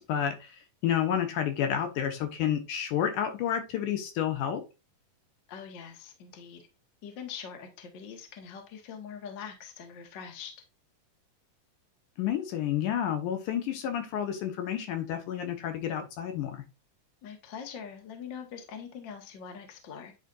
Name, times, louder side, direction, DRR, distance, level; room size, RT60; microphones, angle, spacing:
voice 1, 0.0-4.6 12.2-16.6, left 9 dB, 75° left, 5 dB, 2.6 m, -30 dB
voice 2, 5.5-6.7 7.0-10.5 17.2-20.1, left 7 dB, 50° left, 4 dB, 1.4 m, -43 dB
10.0 x 4.1 x 2.4 m, 0.28 s
omnidirectional pair, 3.7 m